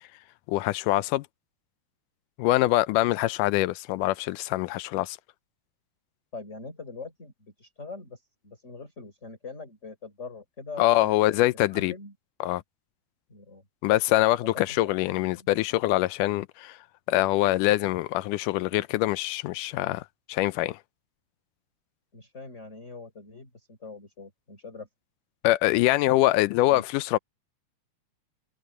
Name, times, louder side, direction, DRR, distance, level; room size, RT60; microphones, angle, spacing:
voice 1, 0.5-1.3 2.4-5.2 10.8-11.9 12.4-12.6 13.8-16.8 17.1-20.0 20.3-20.8 25.4-27.2, left 17 dB, 90° left, 2.2 m, -24 dB
voice 2, 6.3-12.1 13.3-13.6 14.4-15.5 22.1-24.9 26.7-26.8, left 4 dB, 20° left, 4.6 m, -43 dB
omnidirectional pair, 3.7 m